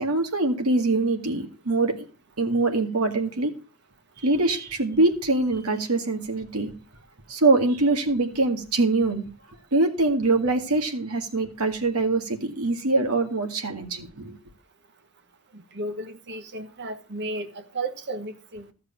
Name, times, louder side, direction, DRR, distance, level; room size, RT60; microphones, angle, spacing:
voice 1, 0.0-2.0 2.4-3.5 4.2-6.7 7.3-9.2 9.7-14.4, right 2 dB, 90° right, 2.0 m, -23 dB
voice 2, 15.7-17.5 17.7-18.6, right 2 dB, 50° right, 1.3 m, -33 dB
14.0 x 6.6 x 5.8 m
head